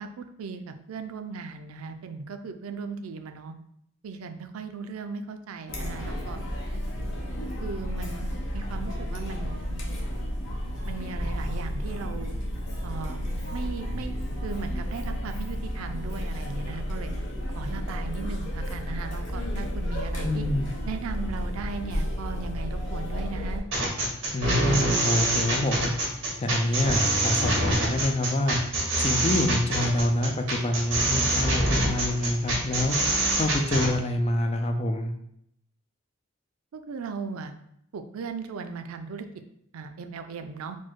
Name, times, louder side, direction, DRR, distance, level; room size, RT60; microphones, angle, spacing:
voice 1, 0.0-3.5 4.0-6.4 7.6-9.6 10.9-12.3 12.8-13.2 13.5-14.1 14.4-17.1 17.5-20.5 20.9-23.6 36.7-37.5 37.9-39.3 39.7-40.8, right 5 dB, 90° right, 8 dB, 0.4 m, -37 dB
Chatter, 5.7-23.6, equal, 60° left, 0.9 m, -32 dB
voice 2, 20.2-20.7 24.3-25.9 26.4-28.6 29.0-33.0 33.4-35.1, left 1 dB, 30° left, 5 dB, 0.4 m, -26 dB
sound 1, 23.7-33.9, right 1 dB, 70° right, 1.5 m, -25 dB
4.3 x 2.1 x 4.5 m, 0.73 s
head